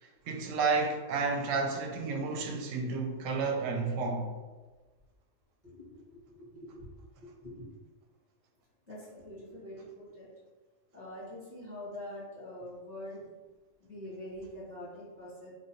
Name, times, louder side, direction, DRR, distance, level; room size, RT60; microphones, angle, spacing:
voice 1, 0.3-4.3, right 4 dB, 85° right, 1.0 m, -31 dB
voice 2, 5.6-6.9 7.4-7.6 8.9-10.3 10.9-13.3 13.8-15.5, left 1 dB, 10° right, 1.2 m, -45 dB
3.1 x 2.2 x 4.0 m
omnidirectional pair, 1.3 m